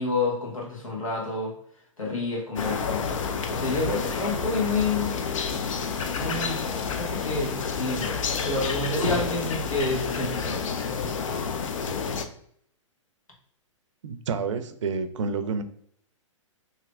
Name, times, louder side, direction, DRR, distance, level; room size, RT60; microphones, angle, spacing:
voice 1, 0.0-1.5 2.0-3.1 3.5-5.2 6.1-6.6 6.9-11.1, left 3 dB, 90° left, -2 dB, 1.3 m, -29 dB
sound 1, 2.6-12.2, left 5 dB, 75° left, 0.5 m, -29 dB
voice 2, 14.0-15.6, right 5 dB, 70° right, 10 dB, 0.5 m, -29 dB
3.3 x 2.8 x 2.4 m, 0.66 s
hypercardioid pair, 125°, 17 cm